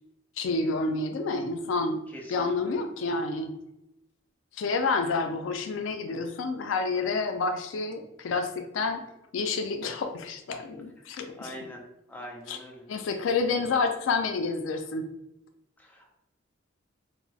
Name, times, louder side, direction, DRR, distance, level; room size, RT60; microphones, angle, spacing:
voice 1, 0.4-2.0 2.3-3.5 4.6-9.0 9.3-11.5 12.5-12.6 12.9-15.1, left 3 dB, 80° left, 6 dB, 0.4 m, -29 dB
voice 2, 2.1-2.8 11.1-11.8 12.1-12.8 15.8-16.2, equal, 10° left, -1 dB, 0.4 m, -44 dB
2.3 x 2.0 x 3.8 m, 0.87 s
head